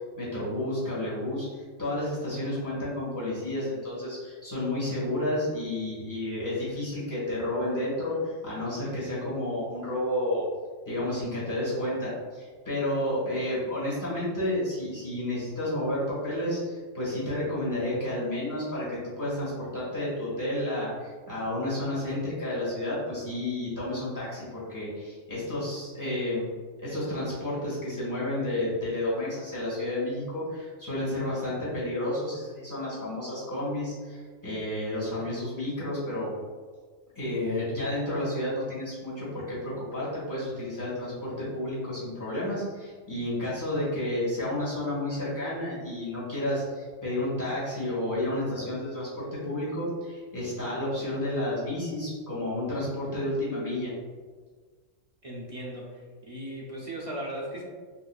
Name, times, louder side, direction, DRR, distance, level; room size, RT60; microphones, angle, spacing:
voice 1, 0.2-10.4 10.8-26.4 26.8-36.3 37.1-53.9, left 1 dB, 15° left, -8 dB, 1.4 m, -31 dB
voice 2, 55.2-57.6, right 1 dB, 50° right, -5 dB, 0.4 m, -37 dB
4.6 x 2.5 x 2.3 m, 1.5 s
omnidirectional pair, 1.4 m